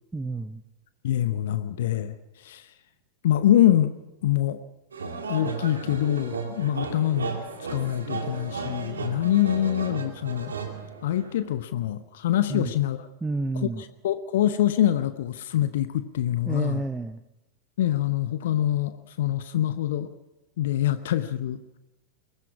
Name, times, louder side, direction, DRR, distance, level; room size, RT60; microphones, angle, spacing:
voice 1, 0.1-0.6 12.5-12.7 13.2-13.8 16.5-17.2, right 2 dB, 10° right, 11 dB, 0.7 m, -30 dB
voice 2, 1.0-2.7 3.2-3.9 4.2-4.6 5.3-7.3 7.7-10.5 11.0-13.1 13.8-16.8 17.8-20.1 20.6-21.6, left 12 dB, 55° left, 12 dB, 0.8 m, -25 dB
sound 1, 4.9-11.5, right 4 dB, 70° right, 2.4 m, -34 dB
23.0 x 19.5 x 6.1 m, 0.97 s
figure-of-eight pair, 90°, 0 cm